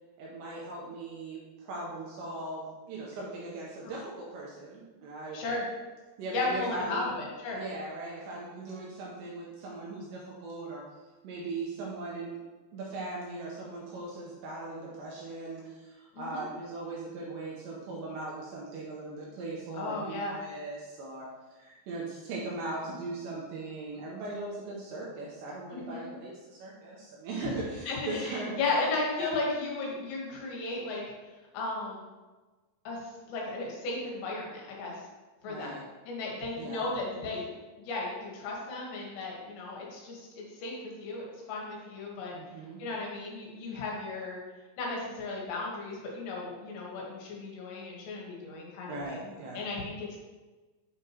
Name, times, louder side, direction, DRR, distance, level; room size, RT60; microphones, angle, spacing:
voice 1, 0.2-5.4 6.2-7.0 7.5-10.8 11.2-12.4 12.7-28.8 35.5-35.8 36.6-36.9 42.3-42.8 48.9-49.7, right 2 dB, 75° right, -4 dB, 2.7 m, -39 dB
voice 2, 5.3-5.6 6.3-7.6 16.2-16.4 19.8-20.4 25.7-26.1 27.4-27.5 27.9-31.0 31.5-32.1 32.9-33.0 33.3-35.0 35.4-35.7 36.1-37.5 37.8-40.8 41.0-42.4 42.8-44.4 44.8-50.2, left 3 dB, 75° left, -2 dB, 4.0 m, -35 dB
8.5 x 6.2 x 3.0 m, 1.2 s
omnidirectional pair, 5.9 m